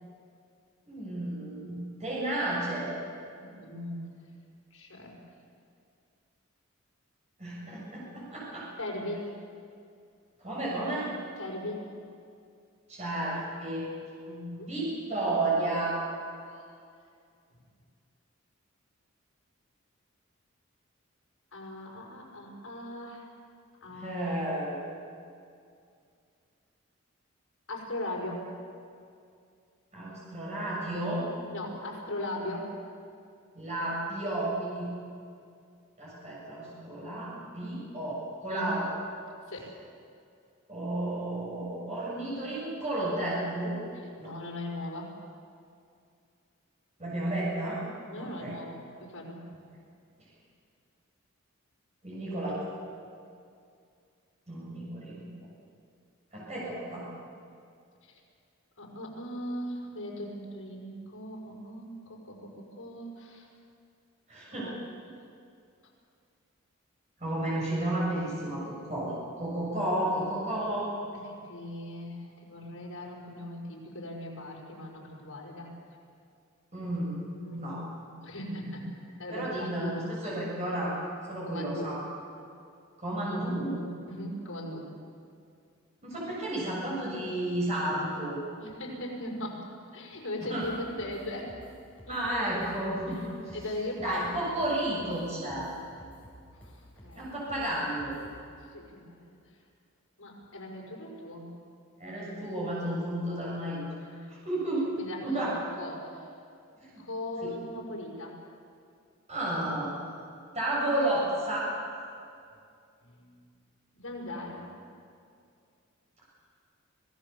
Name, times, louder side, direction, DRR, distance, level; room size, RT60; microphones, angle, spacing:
voice 1, 0.9-2.9 7.4-8.7 10.4-11.1 12.9-13.9 14.5-16.0 23.9-24.8 29.9-31.2 33.5-34.9 36.0-38.9 40.7-43.8 44.2-44.3 47.0-47.8 48.2-48.6 52.0-52.7 54.5-55.3 56.3-57.1 64.3-64.7 67.2-70.9 76.7-77.2 77.5-77.8 79.3-81.0 81.3-82.0 83.0-83.8 86.0-88.4 90.4-90.6 92.1-93.6 94.0-95.7 97.2-98.2 102.0-103.8 104.4-104.9 105.2-105.6 106.8-107.0 107.4-107.5 109.3-109.9 110.5-111.7, right 1 dB, 30° right, -6 dB, 7.2 m, -32 dB
voice 2, 3.4-4.0 4.7-5.2 8.8-9.3 11.4-11.9 14.2-14.7 16.4-16.7 21.5-23.3 23.8-24.2 27.7-28.6 31.5-32.8 38.5-38.7 39.5-39.7 44.2-45.1 48.1-49.4 58.0-58.2 58.8-63.5 64.6-64.8 71.1-75.7 76.8-76.9 77.3-77.6 78.2-79.9 81.4-81.9 84.1-84.9 88.6-89.6 89.9-91.6 92.1-92.2 93.5-94.5 96.6-97.3 98.7-99.4 100.2-101.5 104.0-104.3 105.0-105.5 105.8-106.3 107.0-108.4 113.0-113.3 113.9-114.7, left 1 dB, 75° left, -2 dB, 5.8 m, -39 dB
sound 1, 90.6-98.5, equal, 5° left, 5.7 m, -52 dB
25.5 x 17.5 x 7.1 m, 2.3 s
head